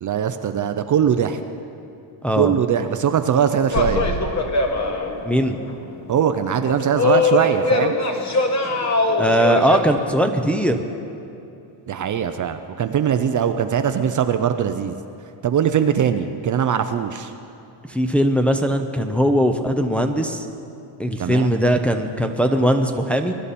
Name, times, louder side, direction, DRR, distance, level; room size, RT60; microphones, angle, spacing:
voice 1, 0.0-1.4 2.3-4.1 6.1-8.0 11.9-15.0 15.4-17.3 21.2-21.5, right 8 dB, 40° right, 9 dB, 0.5 m, -21 dB
voice 2, 2.2-2.5 5.2-5.6 9.2-10.8 17.9-20.5 21.0-23.3, equal, 5° left, 4 dB, 0.6 m, -20 dB
sound 1, 3.7-5.3 5.6-5.7 6.5-9.8, left 3 dB, 35° left, 1.2 m, -21 dB
21.5 x 11.5 x 4.2 m, 2.7 s
cardioid pair, 130°, 49 cm